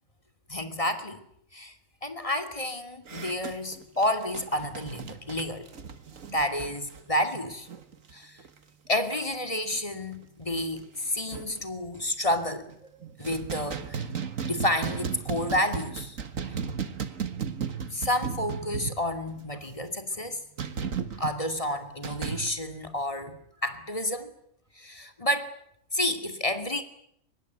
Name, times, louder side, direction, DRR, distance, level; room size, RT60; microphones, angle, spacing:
voice 1, 0.5-1.2 1.5-1.7 2.0-5.7 6.3-7.7 8.1-8.4 8.9-12.7 13.2-14.1 14.4-16.2 16.5-16.6 17.9-20.4 21.1-23.4 23.6-24.3 24.8-25.5 25.9-26.8, left 1 dB, 25° left, 7 dB, 2.6 m, -30 dB
sound 1, 3.1-8.1 8.4-8.6 8.9-9.3 9.7-9.8 10.2-10.3 10.6-11.6 12.3-12.7 13.0-19.5 20.6-21.4 22.0-22.5, right 6 dB, 80° right, 1.9 m, -35 dB
24.0 x 20.5 x 9.4 m, 0.73 s
omnidirectional pair, 1.4 m